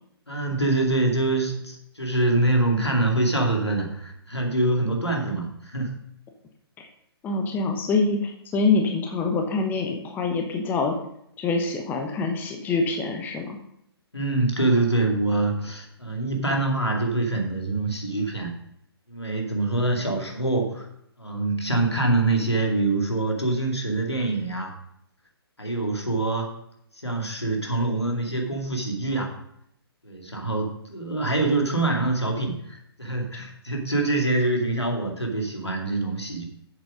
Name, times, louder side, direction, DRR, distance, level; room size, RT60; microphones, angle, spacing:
voice 1, 0.3-6.0 14.1-18.5 19.1-20.9 21.2-24.7 25.6-26.5 27.0-29.3 30.0-36.4, right 2 dB, 85° left, 1 dB, 2.3 m, -25 dB
voice 2, 7.2-10.9 11.4-13.6, left 3 dB, 15° left, 3 dB, 1.0 m, -25 dB
7.9 x 7.3 x 5.0 m, 0.74 s
figure-of-eight pair, 130°, 13 cm